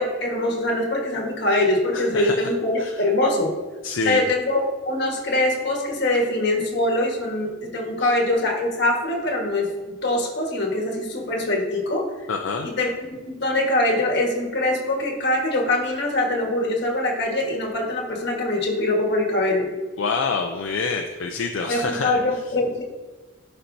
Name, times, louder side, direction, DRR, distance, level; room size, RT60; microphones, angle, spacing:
voice 1, 0.0-3.5 4.0-12.1 12.6-19.7 21.7-22.8, left 1 dB, 60° left, 0 dB, 1.4 m, -23 dB
voice 2, 1.9-2.5 2.8-2.9 3.8-4.2 8.0-8.1 12.3-12.7 20.0-22.1, left 4 dB, 75° left, 3 dB, 0.5 m, -26 dB
11.0 x 4.4 x 2.7 m, 1.3 s
head